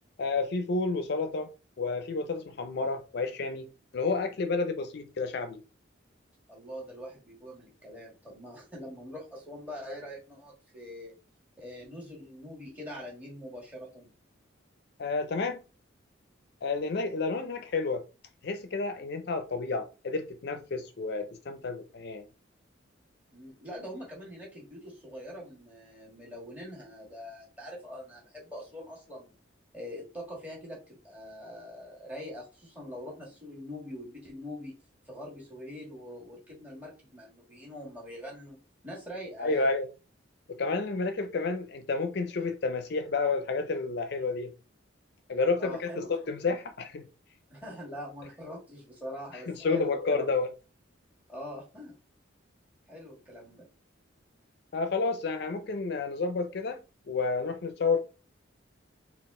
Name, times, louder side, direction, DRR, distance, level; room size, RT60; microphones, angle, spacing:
voice 1, 0.2-1.5 1.8-3.7 3.9-5.6 15.0-15.6 16.6-18.0 18.4-22.3 39.4-39.9 40.5-44.5 45.3-47.0 49.5-50.5 54.7-56.8 57.1-58.0, left 3 dB, 55° left, 0.4 m, -30 dB
voice 2, 6.5-11.1 11.6-14.1 23.3-29.3 29.7-34.8 35.1-39.7 45.6-46.1 47.5-50.4 51.3-52.0 52.9-53.6, equal, 10° right, 1.5 m, -43 dB
3.8 x 2.3 x 3.6 m
head